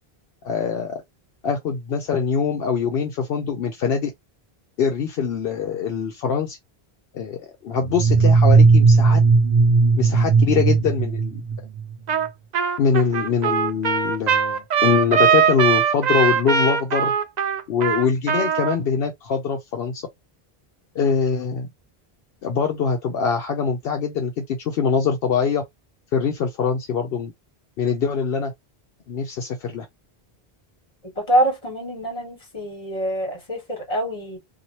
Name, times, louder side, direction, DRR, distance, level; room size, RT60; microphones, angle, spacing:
voice 1, 0.4-1.0 1.4-4.1 4.8-6.6 7.1-9.2 10.0-11.4 12.8-17.1 17.7-20.1 20.9-21.7 22.4-25.6 26.1-27.3 27.8-28.5 29.1-29.9, left 6 dB, 75° left, 0.8 m, -23 dB
sound 1, 7.8-11.9, right 4 dB, 75° right, 0.9 m, -16 dB
Trumpet, 12.1-12.3 12.5-18.8, right 7 dB, 55° right, 0.5 m, -21 dB
voice 2, 31.2-34.4, right 1 dB, 35° left, 1.5 m, -25 dB
2.8 x 2.6 x 2.9 m
omnidirectional pair, 1.0 m